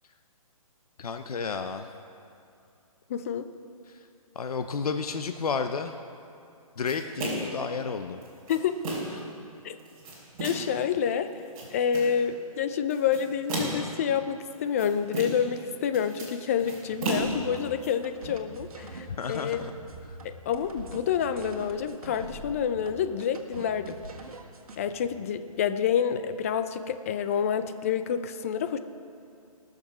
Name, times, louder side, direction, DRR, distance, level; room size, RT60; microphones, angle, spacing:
voice 1, 1.0-1.9 3.9-4.1 4.3-6.0 6.8-8.2 9.1-9.2 19.2-19.7 20.1-20.2, left 5 dB, 85° left, 7 dB, 0.7 m, -32 dB
voice 2, 3.1-3.5 8.5-8.9 9.6-9.8 10.4-11.3 11.7-19.6 20.5-24.0 24.8-28.8, left 8 dB, 25° left, 10 dB, 0.4 m, -28 dB
sound 1, 6.9-7.6 8.2-9.2 9.8-10.8 11.3-12.2 12.9-14.0 14.5-15.6 15.8-17.9, right 1 dB, 25° right, 3.3 m, -34 dB
sound 2, 17.1-24.9, right 3 dB, 75° right, 1.6 m, -44 dB
18.5 x 6.6 x 6.1 m, 2.5 s
hypercardioid pair, 160°, 19 cm